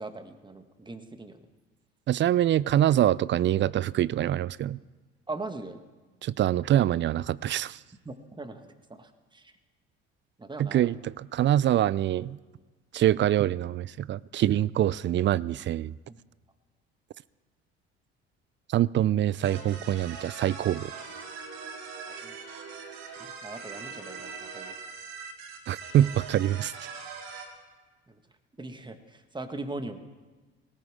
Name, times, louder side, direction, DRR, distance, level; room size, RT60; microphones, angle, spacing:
voice 1, 0.0-1.4 5.3-5.8 8.0-9.5 10.4-10.9 16.1-16.2 22.2-22.3 23.2-24.7 28.1-28.2 28.6-30.0, right 2 dB, 15° right, 1.6 m, -40 dB
voice 2, 2.1-4.8 6.2-7.8 10.6-12.4 12.9-16.0 18.7-20.9 25.7-26.7, right 12 dB, 40° right, 0.4 m, -25 dB
sound 1, 19.4-27.5, right 5 dB, 80° right, 2.1 m, -41 dB
19.0 x 17.0 x 3.6 m
hypercardioid pair, 65°, 30 cm